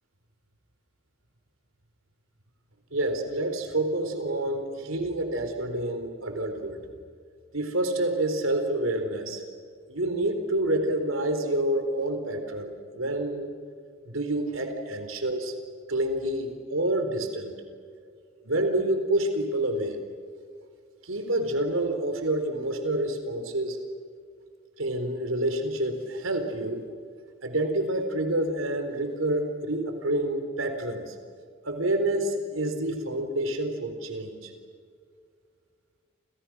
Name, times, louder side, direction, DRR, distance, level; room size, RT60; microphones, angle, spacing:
voice 1, 2.9-6.8 7.5-9.4 9.9-13.5 14.0-15.5 15.9-17.6 18.4-20.0 21.0-23.8 24.8-26.8 27.4-31.1 31.6-34.5, right 1 dB, 85° right, 7 dB, 4.1 m, -28 dB
29.5 x 28.5 x 6.2 m, 2.1 s
head